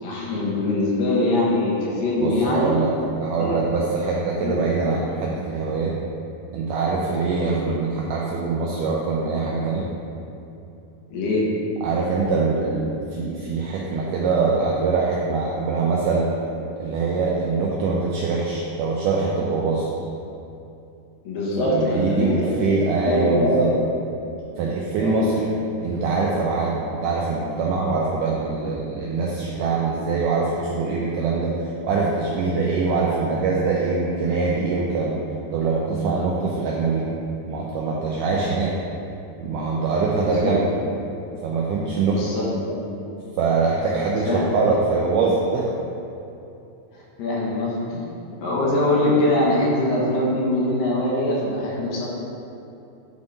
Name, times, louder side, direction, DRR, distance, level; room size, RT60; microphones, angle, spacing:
voice 1, 0.0-2.7 3.4-3.6 4.4-4.5 11.1-11.4 21.2-22.5 23.0-23.6 25.0-25.3 40.2-40.5 42.0-42.7 44.3-44.4 46.9-48.1 48.4-52.1, left 1 dB, 70° left, -5 dB, 2.8 m, -23 dB
voice 2, 2.2-2.9 3.2-5.9 6.5-9.9 11.8-16.3 16.8-19.9 21.6-23.7 24.6-25.5 25.8-31.5 31.8-35.2 35.5-37.1 37.5-38.7 39.4-40.6 41.4-42.2 43.4-45.7, right 4 dB, 90° right, -3 dB, 1.8 m, -23 dB
9.0 x 3.6 x 3.9 m, 2.8 s
omnidirectional pair, 4.3 m